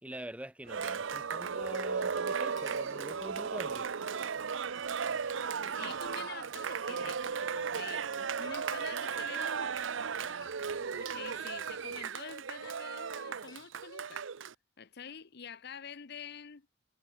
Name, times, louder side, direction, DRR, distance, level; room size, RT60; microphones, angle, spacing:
voice 1, 0.0-3.9, right 1 dB, 5° right, 1.4 m, -45 dB
sound 1, 0.6-12.1, right 3 dB, 55° right, 2.1 m, -58 dB
Cheering, 0.7-14.5, right 6 dB, 80° right, 0.7 m, -36 dB
Chatter / Chink clink, 2.4-14.1, left 4 dB, 20° left, 4.5 m, -63 dB
voice 2, 5.7-9.9 10.9-14.2 14.8-16.7, left 7 dB, 60° left, 0.8 m, -47 dB
head